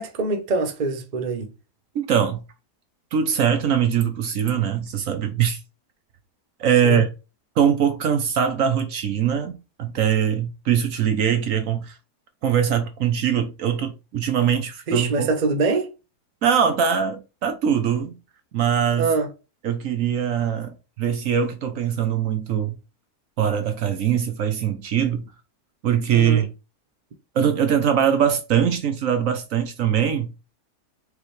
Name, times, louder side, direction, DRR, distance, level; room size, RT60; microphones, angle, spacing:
voice 1, 0.0-1.5 6.8-7.0 14.9-15.9 19.0-19.3 26.1-26.5, right 3 dB, 40° right, 0.7 m, -24 dB
voice 2, 1.9-2.4 3.1-5.6 6.6-7.1 7.6-12.0 12.4-15.3 16.4-18.2 18.5-19.1 19.6-22.7 23.4-25.3 25.8-26.5 27.3-30.3, right 8 dB, 65° right, 1.0 m, -22 dB
4.8 x 3.1 x 3.1 m
omnidirectional pair, 1.7 m